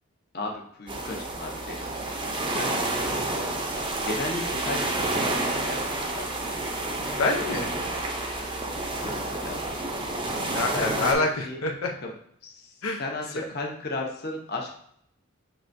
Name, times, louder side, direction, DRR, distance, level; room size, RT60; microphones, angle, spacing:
voice 1, 0.3-3.5 4.0-6.3 9.0-9.6 10.7-11.6 12.0-12.1 12.4-12.7 13.0-14.7, left 2 dB, 45° left, 0 dB, 0.8 m, -35 dB
sound 1, 0.9-11.1, right 2 dB, 20° right, 0.5 m, -29 dB
voice 2, 7.2-7.7 10.4-11.9 12.8-13.0 13.3-13.4, left 3 dB, 85° left, 1 dB, 0.6 m, -26 dB
6.0 x 3.2 x 2.6 m, 0.67 s
head